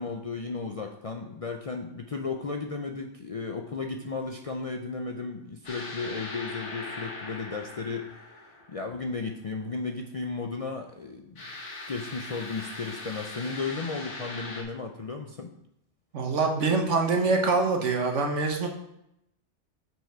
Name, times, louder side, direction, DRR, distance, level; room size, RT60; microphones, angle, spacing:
voice 1, 0.0-11.5 11.9-15.5, left 4 dB, 50° left, 3 dB, 0.4 m, -34 dB
sound 1, 5.6-9.1 11.4-14.6, left 2 dB, 75° left, 1.7 m, -40 dB
voice 2, 16.1-18.7, right 3 dB, 80° right, 3 dB, 1.4 m, -24 dB
6.4 x 5.1 x 4.5 m, 0.80 s
omnidirectional pair, 1.2 m